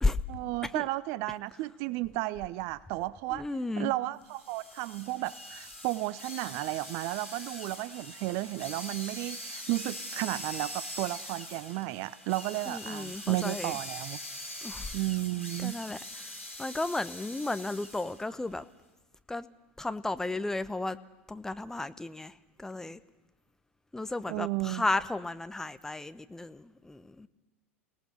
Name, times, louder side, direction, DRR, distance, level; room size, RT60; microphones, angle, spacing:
voice 1, 0.3-3.4 3.8-14.2 14.9-15.8 24.3-24.8, right 18 dB, 45° right, 20 dB, 0.7 m, -33 dB
voice 2, 3.3-3.9 12.7-13.8 14.6-14.9 15.6-18.6 19.3-19.5 19.8-21.0 21.3-23.0 23.9-27.3, left 2 dB, 5° left, 12 dB, 0.9 m, -34 dB
sound 1, 4.3-18.2, left 1 dB, 85° left, 3.5 m, -43 dB
30.0 x 18.5 x 6.4 m, 1.1 s
figure-of-eight pair, 85°, 7 cm